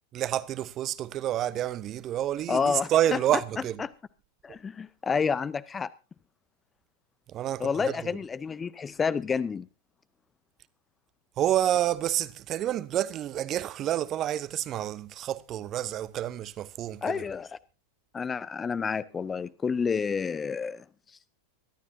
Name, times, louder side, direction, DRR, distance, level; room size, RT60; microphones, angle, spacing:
voice 1, 0.1-3.9 7.3-8.2 11.4-17.2, right 12 dB, 30° right, 0.8 m, -29 dB
voice 2, 2.5-3.2 3.8-3.9 4.4-5.9 7.6-9.7 17.0-17.6 18.1-20.8, left 5 dB, 15° left, 0.6 m, -29 dB
23.5 x 12.5 x 2.7 m
figure-of-eight pair, 90°, 0 cm